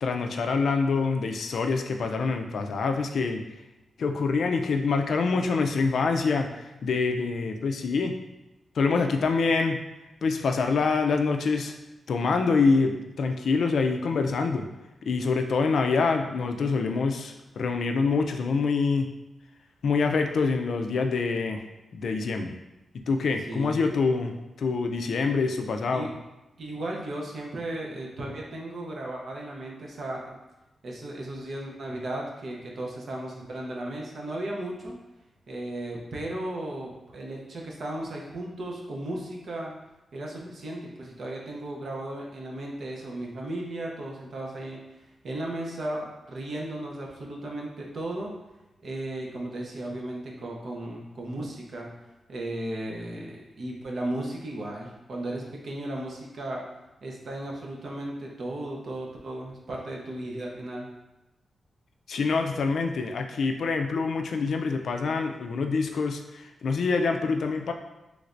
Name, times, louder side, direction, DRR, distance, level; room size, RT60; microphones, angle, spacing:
voice 1, 0.0-3.4 4.0-8.1 8.8-9.8 10.2-11.7 12.1-14.6 15.1-19.1 19.8-21.6 21.9-22.5 23.1-24.3 24.6-26.1 62.1-67.7, left 4 dB, 75° left, 5 dB, 0.3 m, -25 dB
voice 2, 23.5-23.8 25.1-25.2 25.9-26.1 26.6-30.3 30.8-35.0 35.5-39.7 40.1-44.8 45.2-48.3 48.8-51.9 52.3-56.6 57.0-60.9, right 1 dB, 65° right, -1 dB, 0.6 m, -35 dB
3.2 x 3.1 x 2.5 m, 0.99 s
wide cardioid pair, 100°, 0 cm